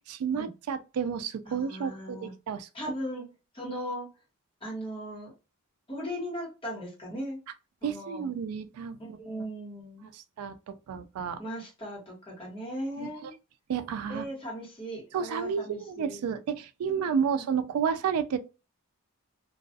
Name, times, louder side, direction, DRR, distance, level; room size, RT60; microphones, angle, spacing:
voice 1, 0.1-2.7 7.8-9.0 10.1-11.4 13.0-13.3 13.7-14.3 15.1-18.4, right 7 dB, 85° right, 0.3 m, -31 dB
voice 2, 1.4-2.3 2.7-3.3 3.5-4.1 4.6-5.3 5.9-7.4 7.8-8.3 9.0-10.1 11.4-13.3 14.1-16.2 16.8-17.5, equal, 25° left, 1.2 m, -38 dB
2.3 x 2.3 x 2.5 m
head